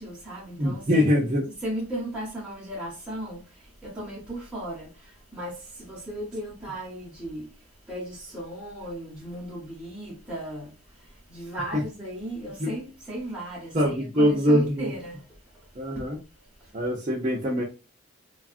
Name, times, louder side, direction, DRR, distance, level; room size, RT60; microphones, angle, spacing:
voice 1, 0.0-1.1 1.5-3.4 3.8-7.5 7.9-10.7 11.0-15.2 15.9-16.1, right 1 dB, 5° right, 0.9 m, -36 dB
voice 2, 0.6-1.5 11.7-11.8 12.6-12.7 13.7-14.9 15.8-16.2 16.7-17.6, equal, 30° right, 0.5 m, -23 dB
3.4 x 2.3 x 2.4 m
head